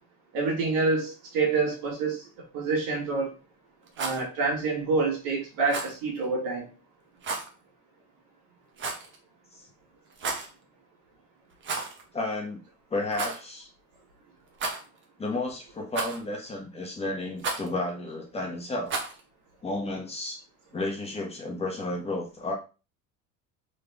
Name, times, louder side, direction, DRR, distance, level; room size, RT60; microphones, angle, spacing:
voice 1, 0.3-3.3 4.0-6.7, right 4 dB, 80° right, 1.8 m, -27 dB
Rattle, 3.8-4.2 5.7-6.0 7.2-7.5 8.8-9.2 10.1-10.5 11.6-12.0 12.3-12.4 13.1-13.4 14.5-15.0 15.9-16.4 17.4-17.7 18.9-19.2, right 3 dB, 35° right, 1.1 m, -32 dB
voice 2, 12.1-12.6 12.9-13.7 15.2-19.0 19.6-20.4 20.7-22.5, left 2 dB, 20° left, 1.2 m, -32 dB
3.8 x 3.4 x 3.5 m
cardioid pair, 140°, 32 cm